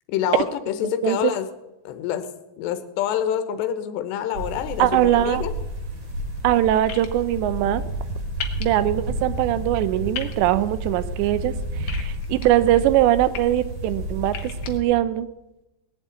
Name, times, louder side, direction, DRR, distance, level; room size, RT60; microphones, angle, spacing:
voice 1, 0.1-1.5 1.8-2.3 2.6-5.5, left 10 dB, 85° left, 9 dB, 3.2 m, -26 dB
voice 2, 0.8-1.3 4.8-5.4 6.4-7.8 8.6-11.5 11.8-15.3, right 13 dB, 90° right, 14 dB, 3.0 m, -21 dB
sound 1, 4.3-14.8, right 1 dB, 30° right, 2.9 m, -31 dB
sound 2, 6.9-7.1 8.4-8.6 10.1-10.3 11.9-12.5 13.1-13.4 14.3-14.7, left 8 dB, 60° left, 1.9 m, -33 dB
19.5 x 7.6 x 9.3 m, 0.96 s
omnidirectional pair, 5.0 m